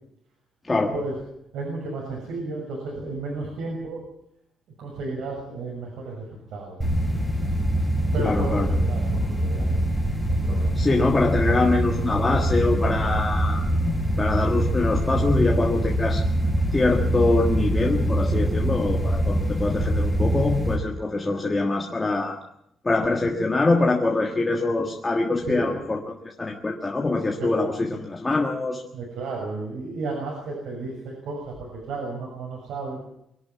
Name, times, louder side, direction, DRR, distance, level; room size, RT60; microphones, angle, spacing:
voice 1, 1.5-4.0 4.8-7.4 8.1-9.8 10.3-10.7 25.5-25.8 27.4-27.5 28.9-33.0, right 3 dB, 80° right, -1 dB, 6.5 m, -33 dB
sound 1, 6.8-20.7, right 1 dB, ahead, 5.0 m, -24 dB
voice 2, 8.2-8.7 10.8-16.2 16.7-22.4 22.8-28.8, left 3 dB, 15° left, 1 dB, 1.5 m, -24 dB
23.5 x 11.5 x 9.5 m, 0.79 s
cardioid pair, 180°, 0 cm